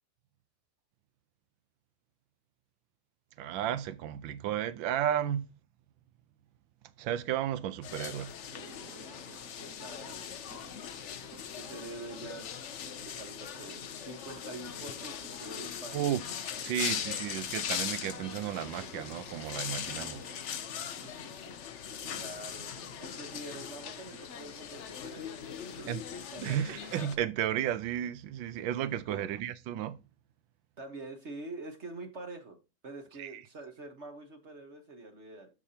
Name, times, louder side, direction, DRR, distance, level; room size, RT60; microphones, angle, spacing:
voice 1, 3.4-5.4 7.0-8.3 15.9-20.3 25.9-26.0 26.4-30.0 33.2-33.4, right 10 dB, 80° right, 1.3 m, -33 dB
sound 1, 7.8-27.2, left 8 dB, 70° left, 0.7 m, -40 dB
sound 2, 8.4-27.0, right 6 dB, 55° right, 1.3 m, -56 dB
voice 2, 9.8-10.4 11.5-12.7 13.0-16.1 22.2-22.7 23.0-25.9 26.3-26.6 29.1-29.3 30.8-35.5, right 2 dB, 40° right, 1.3 m, -45 dB
12.5 x 4.9 x 2.8 m
omnidirectional pair, 2.1 m